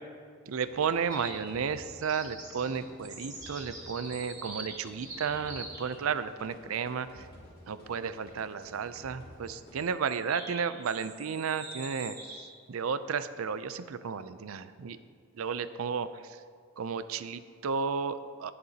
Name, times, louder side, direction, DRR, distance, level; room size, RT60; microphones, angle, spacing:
voice 1, 0.5-7.3 7.7-12.2 12.7-15.0 15.3-16.4 16.8-18.5, right 6 dB, 85° right, 13 dB, 0.5 m, -33 dB
sound 1, 0.6-9.9, equal, 45° left, 2.4 m, -53 dB
sound 2, 1.1-1.6 2.0-5.9 9.5-12.6, right 2 dB, 20° right, 1.8 m, -45 dB
18.0 x 6.7 x 2.8 m, 2.2 s
head